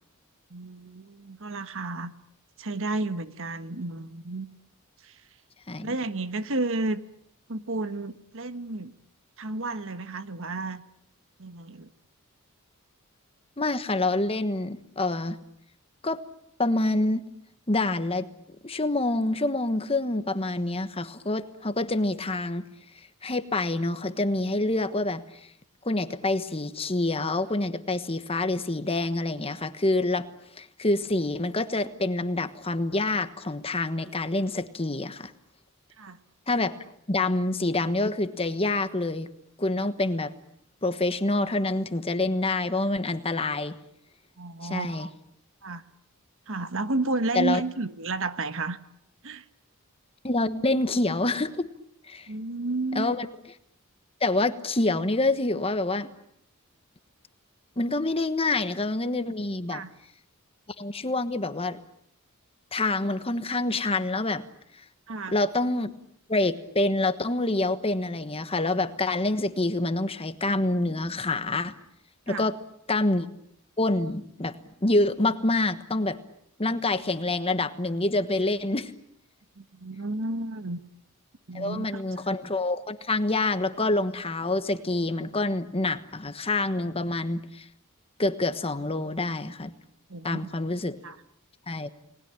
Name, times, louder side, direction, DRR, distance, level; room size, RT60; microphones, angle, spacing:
voice 1, 0.5-2.1 2.6-4.5 5.0-5.2 5.8-7.0 7.5-8.9 9.4-10.8 11.4-11.9 36.0-36.2 44.4-45.1 45.6-45.8 46.5-48.8 49.2-49.4 52.3-53.1 59.7-59.9 65.1-65.4 72.3-72.4 79.6-80.8 81.5-82.0 90.1-90.5 91.0-91.2, right 2 dB, 60° right, 11 dB, 1.3 m, -32 dB
voice 2, 13.6-15.4 16.0-16.2 16.6-17.2 17.7-18.3 18.6-22.6 23.2-25.2 25.8-30.3 30.6-35.3 36.5-36.7 37.1-39.3 39.6-40.3 40.8-43.8 44.6-45.1 47.3-47.6 50.2-51.7 52.1-52.3 52.9-53.3 54.2-56.1 57.8-59.8 60.8-61.8 62.7-64.4 65.3-65.9 66.3-71.8 72.3-72.6 72.9-73.3 73.8-74.6 74.8-76.2 76.6-78.9 81.5-87.7 88.2-89.7 90.2-91.0 91.7-91.9, left 2 dB, 25° left, 11 dB, 1.3 m, -26 dB
30.0 x 20.0 x 8.9 m, 0.73 s
head